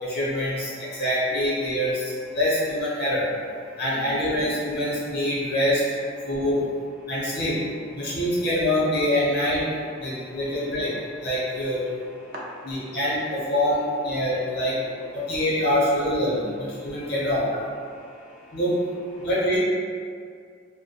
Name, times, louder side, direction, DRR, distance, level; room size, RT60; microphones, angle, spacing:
voice 1, 0.0-3.3 3.8-5.8 6.3-6.7 7.1-7.6 7.9-9.7 10.0-10.9 11.2-11.8 12.6-13.8 14.0-14.7 15.1-17.5 18.5-18.8 19.2-19.6, left 1 dB, 50° left, -7 dB, 0.6 m, -25 dB
voice 2, 10.0-10.7 10.9-11.3 11.9-13.0 14.1-14.6 15.2-15.3 16.8-17.1 17.8-18.6 19.1-19.3, equal, 45° right, -4 dB, 0.3 m, -44 dB
2.2 x 2.1 x 2.7 m, 2.2 s
head